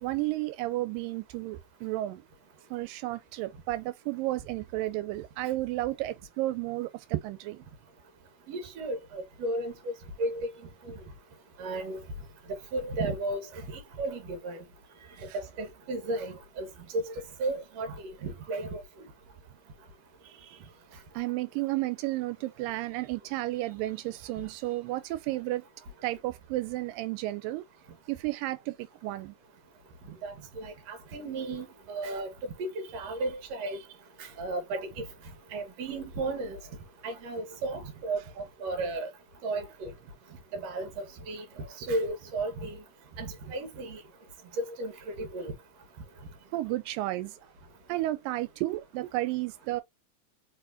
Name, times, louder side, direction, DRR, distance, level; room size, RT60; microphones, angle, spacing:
voice 1, 0.0-2.2 2.7-7.6 15.2-15.4 20.2-20.6 21.1-25.7 26.0-27.6 28.1-29.4 46.5-47.4 47.9-49.8, right 17 dB, 85° right, 2.2 m, -32 dB
voice 2, 8.5-9.9 10.2-10.5 10.9-11.0 11.6-12.0 12.7-13.7 14.0-14.6 15.3-16.7 16.9-17.1 17.4-18.8 30.2-33.8 34.2-35.1 35.5-36.6 37.0-39.1 39.4-39.9 40.5-41.4 41.8-42.8 43.2-44.0 44.8-45.5, right 2 dB, 55° right, 2.3 m, -34 dB
4.7 x 4.3 x 2.6 m
omnidirectional pair, 3.9 m